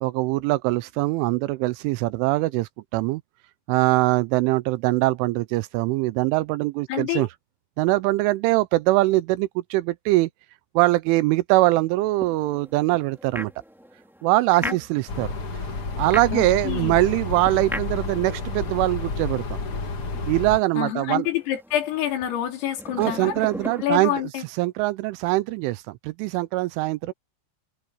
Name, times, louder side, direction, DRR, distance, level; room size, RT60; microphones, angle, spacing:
voice 1, 0.0-3.2 3.7-7.3 7.8-10.3 10.8-13.5 14.2-15.3 15.6-15.7 16.0-19.4 20.3-21.3 23.0-24.1 24.6-27.1, right 19 dB, 80° right, 2.9 m, -22 dB
voice 2, 6.9-7.3 14.6-14.8 16.3-17.0 20.8-23.4 23.8-24.4, left 11 dB, 85° left, 6.2 m, -27 dB
sound 1, 12.2-24.1, equal, ahead, 0.6 m, -39 dB
sound 2, 15.1-20.6, left 3 dB, 45° left, 1.9 m, -30 dB
omnidirectional pair, 5.8 m